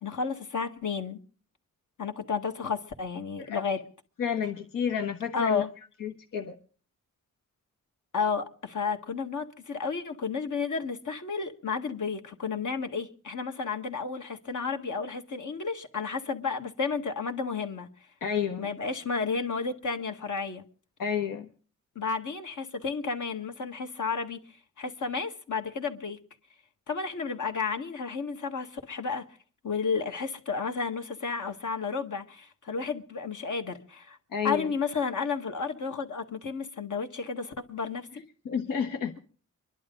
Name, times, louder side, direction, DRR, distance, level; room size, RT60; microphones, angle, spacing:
voice 1, 0.0-1.2 2.0-3.8 5.3-5.7 8.1-17.9 18.6-20.6 22.0-24.4 24.8-26.2 26.9-29.2 29.6-34.2 34.4-38.2, left 5 dB, 65° left, 1.9 m, -32 dB
voice 2, 4.2-5.6 6.0-6.5 18.2-18.7 21.0-21.5 34.3-34.7 38.4-39.1, left 7 dB, 85° left, 1.4 m, -30 dB
25.0 x 11.5 x 3.9 m
cardioid pair, 75°, 32 cm